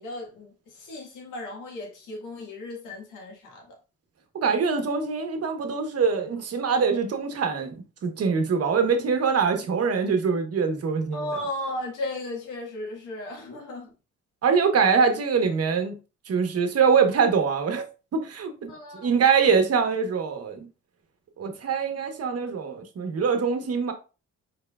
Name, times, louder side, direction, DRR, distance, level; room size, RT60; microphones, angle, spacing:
voice 1, 0.0-3.8 11.1-13.9 18.7-19.1, left 1 dB, 80° left, 1.9 m, -35 dB
voice 2, 4.3-7.8 8.0-11.4 14.4-15.9 16.3-17.8 18.1-20.7 21.4-23.9, right 5 dB, 55° right, 1.2 m, -23 dB
4.6 x 4.6 x 2.4 m
cardioid pair, 90°, 30 cm